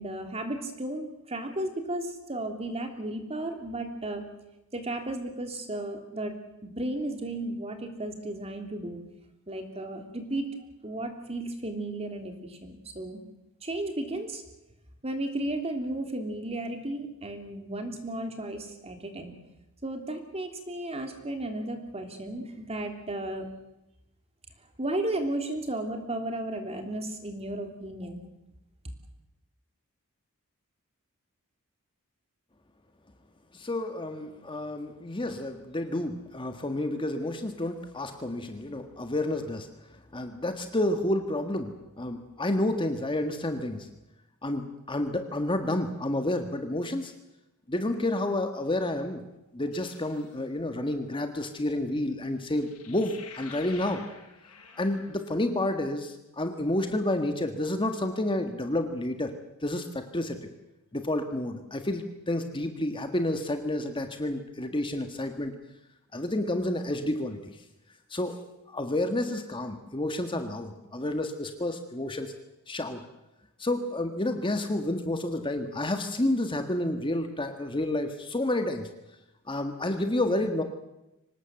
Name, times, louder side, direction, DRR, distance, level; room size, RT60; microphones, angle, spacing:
voice 1, 0.0-4.2 4.7-6.3 6.6-9.0 9.5-10.5 10.8-13.2 13.6-14.4 15.0-19.3 19.8-23.5 24.8-28.2, right 1 dB, 30° right, 5 dB, 3.3 m, -34 dB
voice 2, 33.5-39.7 40.1-43.9 44.4-47.1 47.7-49.2 49.5-54.0 54.8-59.3 59.6-60.5 60.9-65.5 66.1-67.4 68.1-68.3 68.7-72.3 72.7-73.0 73.6-78.9 79.5-80.6, left 1 dB, 25° left, 7 dB, 1.7 m, -30 dB
sound 1, 49.7-50.4 52.5-55.4, left 5 dB, 85° left, 5.9 m, -49 dB
25.0 x 19.0 x 7.8 m, 0.91 s
head